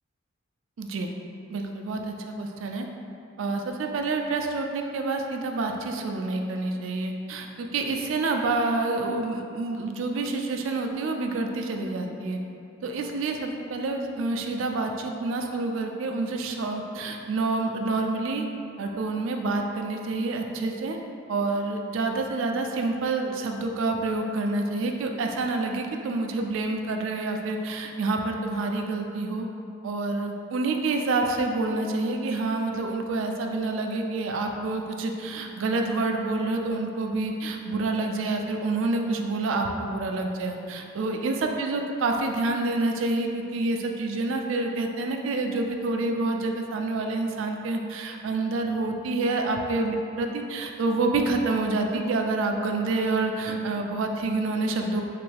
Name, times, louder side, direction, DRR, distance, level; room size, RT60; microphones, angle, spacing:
voice 1, 0.8-1.1 1.5-2.9 3.4-12.4 12.8-18.5 18.8-21.0 21.3-29.5 29.8-55.0, right 3 dB, 75° right, 3 dB, 0.3 m, -28 dB
3.3 x 3.0 x 3.2 m, 2.6 s
head